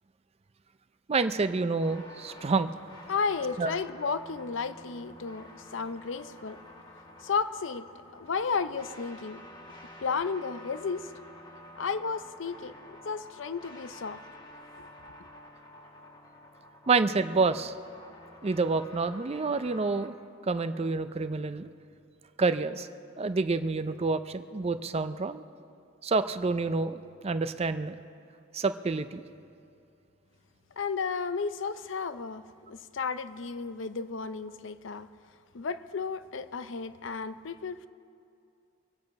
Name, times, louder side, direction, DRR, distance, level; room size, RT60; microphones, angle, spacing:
voice 1, 1.1-2.7 3.6-3.7 16.9-17.7 18.4-20.1 20.4-21.7 22.4-22.9 23.2-25.4 26.0-28.0 28.5-29.2, right 4 dB, 30° right, 11 dB, 0.5 m, -28 dB
sound 1, 1.8-20.1, left 1 dB, 20° left, 1.2 m, -50 dB
voice 2, 3.1-6.6 7.2-9.4 10.0-11.1 11.7-14.2 14.8-14.9 15.2-15.3 30.8-35.1 35.5-37.9, left 5 dB, 65° left, 13 dB, 0.5 m, -33 dB
23.5 x 8.9 x 5.3 m, 2.5 s
head